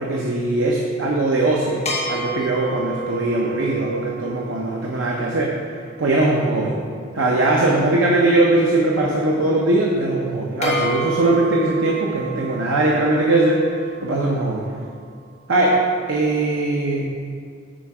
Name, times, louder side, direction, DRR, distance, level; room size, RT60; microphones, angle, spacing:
voice 1, 0.0-5.6 6.0-6.8 7.1-13.6 14.0-14.7 15.5-15.8 16.1-17.0, right 2 dB, 70° right, -2 dB, 0.8 m, -20 dB
sound 1, 1.9-5.5 10.6-15.0, right 1 dB, 35° left, 1.4 m, -31 dB
10.0 x 4.5 x 4.9 m, 2.2 s
head